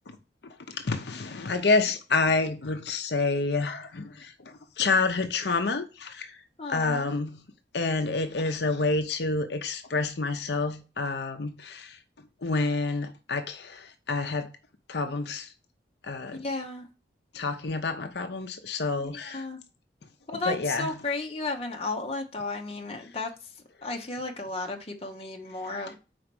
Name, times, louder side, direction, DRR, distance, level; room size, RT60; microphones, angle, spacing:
voice 1, 0.7-6.4 6.7-7.4 7.7-12.0 12.4-14.5 14.9-15.5 16.0-16.4 17.3-19.5 20.4-20.9 25.6-25.7, left 3 dB, 70° left, 0.7 m, -28 dB
voice 2, 6.6-7.0 16.3-16.9 19.0-19.6 20.3-23.3 23.8-26.0, left 3 dB, 35° left, 1.0 m, -34 dB
4.9 x 4.3 x 5.9 m
head